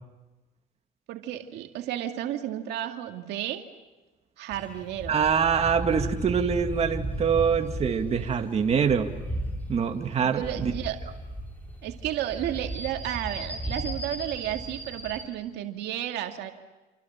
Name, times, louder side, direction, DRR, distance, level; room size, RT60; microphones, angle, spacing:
voice 1, 1.1-3.6 4.4-5.2 10.2-11.0 11.8-16.5, right 12 dB, 85° right, 4 dB, 2.3 m, -32 dB
sound 1, 4.5-15.3, right 1 dB, 10° left, 7.1 m, -36 dB
voice 2, 5.1-9.1 9.7-10.7, right 6 dB, 40° right, 4 dB, 2.3 m, -24 dB
28.5 x 26.5 x 7.4 m, 1.2 s
cardioid pair, 110°, 17 cm